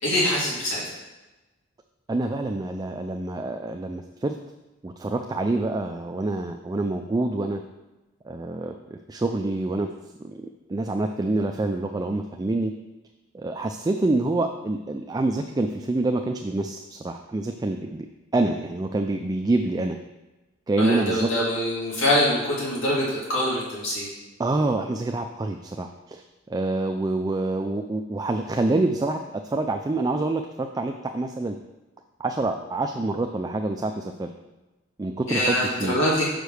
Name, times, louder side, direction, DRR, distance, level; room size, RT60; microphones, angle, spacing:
voice 1, 0.0-0.8 20.8-24.1 35.3-36.3, left 1 dB, 70° left, -6 dB, 2.5 m, -24 dB
voice 2, 2.1-4.3 4.8-7.6 8.2-9.9 10.2-12.7 13.3-18.1 18.3-20.0 20.7-21.3 24.4-31.6 32.2-34.3 35.0-36.0, right 2 dB, 20° right, 4 dB, 0.3 m, -26 dB
5.6 x 5.1 x 6.3 m, 1.1 s
head